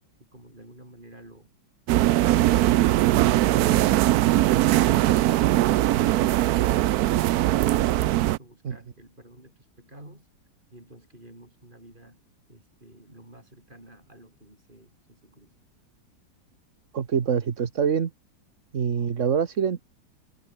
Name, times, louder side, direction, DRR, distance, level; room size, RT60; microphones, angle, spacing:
voice 1, 0.3-1.5 7.7-10.3 10.7-12.2 12.5-15.5, right 1 dB, 25° right, 7.4 m, -50 dB
sound 1, 1.9-8.4, right 15 dB, 75° right, 0.8 m, -20 dB
voice 2, 16.9-18.1 18.7-19.8, right 7 dB, 45° right, 1.4 m, -25 dB
omnidirectional pair, 2.1 m